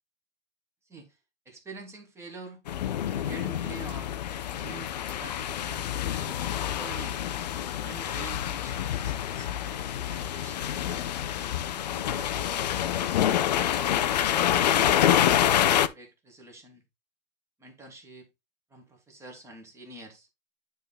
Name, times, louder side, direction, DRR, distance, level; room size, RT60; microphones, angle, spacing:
voice 1, 0.8-1.2 1.4-2.6 3.1-4.1 4.5-7.2 7.8-9.5 10.1-11.2 11.7-14.4 15.1-16.8 17.6-18.3 18.7-20.3, right 3 dB, 5° right, 1.3 m, -47 dB
sound 1, 2.7-15.9, left 11 dB, 35° left, 0.4 m, -27 dB
9.3 x 3.7 x 3.9 m
hypercardioid pair, 160°, 38 cm